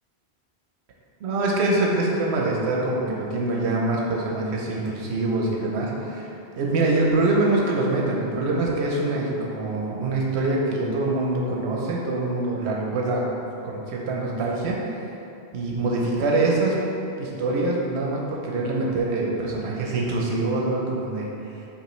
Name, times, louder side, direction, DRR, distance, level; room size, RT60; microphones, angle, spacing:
voice 1, 1.2-6.3 6.6-13.2 13.6-14.8 15.5-16.8 17.2-21.6, right 2 dB, 90° right, -2 dB, 0.9 m, -24 dB
5.3 x 2.4 x 3.1 m, 2.8 s
omnidirectional pair, 1.1 m